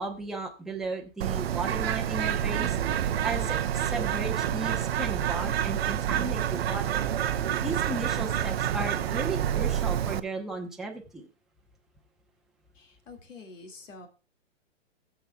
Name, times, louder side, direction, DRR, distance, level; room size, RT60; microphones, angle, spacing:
voice 1, 0.0-7.0 7.6-11.3, right 3 dB, ahead, 0 dB, 0.7 m, -35 dB
Bird, 1.2-10.2, right 10 dB, 55° right, 0.6 m, -28 dB
voice 2, 12.7-14.1, left 3 dB, 85° left, 4 dB, 2.3 m, -47 dB
20.0 x 7.3 x 2.3 m, 0.32 s
hypercardioid pair, 145°, 37 cm